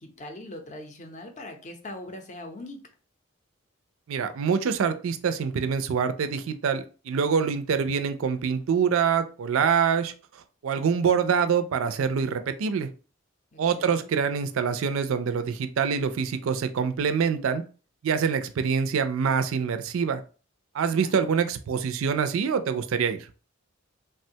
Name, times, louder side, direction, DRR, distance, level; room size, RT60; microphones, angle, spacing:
voice 1, 0.0-2.8 13.5-14.3 20.9-21.1, left 1 dB, 35° left, 5 dB, 0.5 m, -41 dB
voice 2, 4.1-10.1 10.6-12.9 13.6-17.6 18.0-20.2 20.7-23.2, right 6 dB, 70° right, 10 dB, 0.4 m, -25 dB
3.3 x 2.2 x 2.7 m, 0.37 s
head